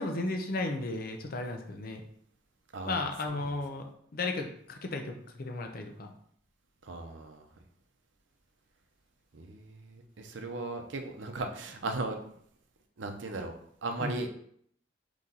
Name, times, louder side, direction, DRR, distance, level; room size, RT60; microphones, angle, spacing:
voice 1, 0.0-2.0 2.8-3.9 4.1-6.1 14.0-14.2, left 2 dB, 55° left, 5 dB, 0.6 m, -34 dB
voice 2, 3.3-3.6 6.8-7.5 9.3-12.4 13.0-14.3, right 2 dB, 90° right, 5 dB, 0.7 m, -37 dB
4.1 x 3.1 x 3.8 m, 0.67 s
head